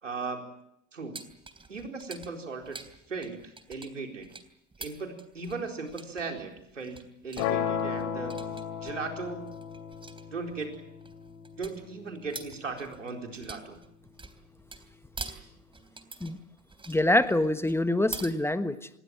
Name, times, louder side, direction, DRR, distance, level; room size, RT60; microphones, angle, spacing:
voice 1, 0.0-0.4 0.9-1.1 1.7-2.8 3.1-4.3 4.8-8.4 8.8-9.4 10.3-10.8 11.5-13.8, right 4 dB, 85° right, 3 dB, 4.3 m, -37 dB
sound 1, 1.1-18.3, right 3 dB, 15° right, 3.5 m, -46 dB
sound 2, 7.4-13.4, left 8 dB, 60° left, 3.1 m, -35 dB
voice 2, 16.9-18.9, left 1 dB, 5° left, 11 dB, 1.3 m, -25 dB
26.5 x 20.5 x 7.8 m, 0.79 s
figure-of-eight pair, 75°, 36 cm